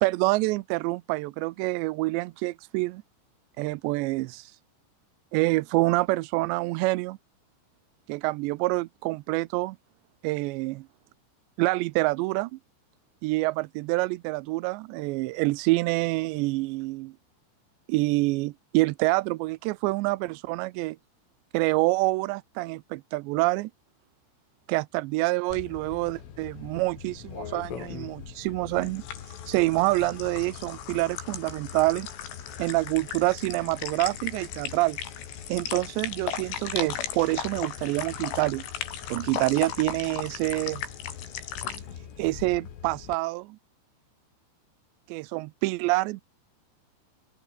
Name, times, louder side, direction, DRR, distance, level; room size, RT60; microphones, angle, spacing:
voice 1, 0.0-3.0 3.6-4.5 5.3-7.2 8.1-9.8 10.2-10.9 11.6-12.6 13.2-17.1 17.9-21.0 21.5-23.7 24.7-29.0 29.5-32.1 32.6-35.0 35.5-38.6 39.1-40.8 42.2-43.6 45.1-46.2, right 22 dB, 90° right, 2.5 m, -27 dB
sound 1, 25.5-43.2, left 8 dB, 75° left, 6.1 m, -37 dB
open air
omnidirectional pair, 5.8 m